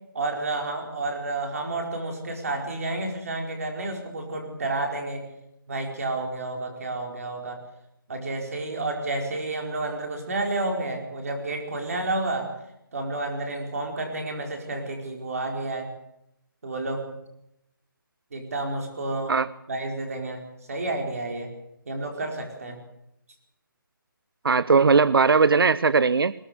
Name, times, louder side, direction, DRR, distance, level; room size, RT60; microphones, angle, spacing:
voice 1, 0.1-5.3 5.7-7.6 8.1-12.5 12.9-15.9 16.6-17.2 18.3-19.3 19.7-21.5 21.9-22.8, right 2 dB, 40° right, 3 dB, 4.8 m, -30 dB
voice 2, 24.4-26.3, right 5 dB, 90° right, 19 dB, 0.7 m, -19 dB
21.5 x 19.0 x 6.8 m, 0.82 s
hypercardioid pair, 180°, 12 cm